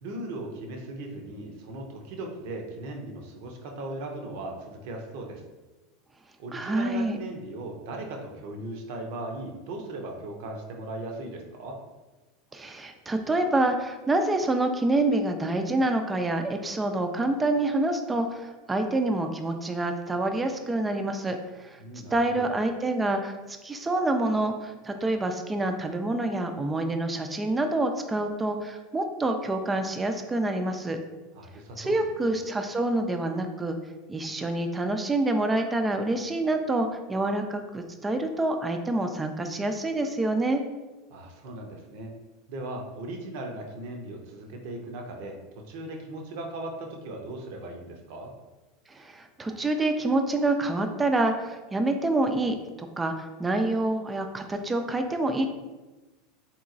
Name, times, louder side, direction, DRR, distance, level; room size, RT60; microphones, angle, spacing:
voice 1, 0.0-5.4 6.4-11.8 21.8-22.5 31.3-32.4 41.1-42.1 42.5-45.4 45.7-48.3, right 2 dB, 60° right, 2 dB, 0.6 m, -38 dB
voice 2, 6.5-7.2 12.5-21.8 22.1-31.0 31.8-33.8 34.1-40.6 48.9-52.6 53.0-55.5, right 2 dB, 15° right, 6 dB, 0.4 m, -27 dB
3.7 x 2.9 x 2.5 m, 1.2 s
hypercardioid pair, 85°, 0 cm